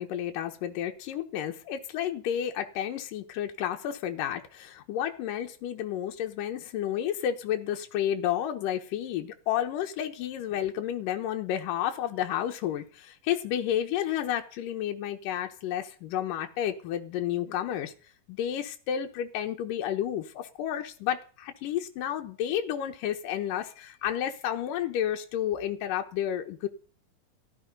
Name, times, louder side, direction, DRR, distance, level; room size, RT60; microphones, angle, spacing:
voice 1, 0.0-17.9 18.3-26.7, left 10 dB, 80° left, 2.7 m, -31 dB
15.5 x 12.0 x 5.3 m
omnidirectional pair, 3.8 m